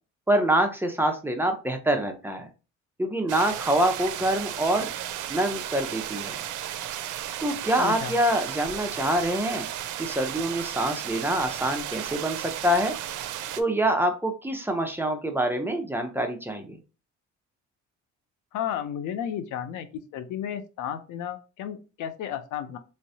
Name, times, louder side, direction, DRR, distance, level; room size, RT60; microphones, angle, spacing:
voice 1, 0.3-2.5 3.0-4.9 5.3-6.4 7.4-9.7 10.0-12.9 13.6-16.8, right 1 dB, 5° right, 4 dB, 0.7 m, -25 dB
sound 1, 3.3-13.6, right 11 dB, 80° right, 0.5 m, -34 dB
voice 2, 7.8-8.1 18.5-19.9 20.1-22.8, left 9 dB, 85° left, 10 dB, 0.6 m, -33 dB
3.2 x 3.1 x 2.7 m, 0.32 s
cardioid pair, 90°, 30 cm